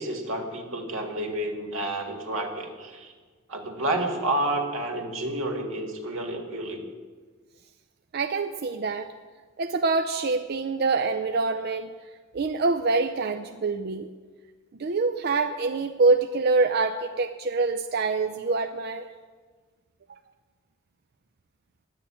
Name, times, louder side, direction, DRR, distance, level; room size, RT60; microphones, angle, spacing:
voice 1, 0.0-3.1 3.5-6.8, right 1 dB, 90° right, 3 dB, 1.9 m, -30 dB
voice 2, 8.1-9.1 9.6-11.9 12.3-14.1 14.8-19.1, right 3 dB, 50° right, 7 dB, 0.5 m, -25 dB
11.0 x 9.0 x 8.6 m, 1.5 s
head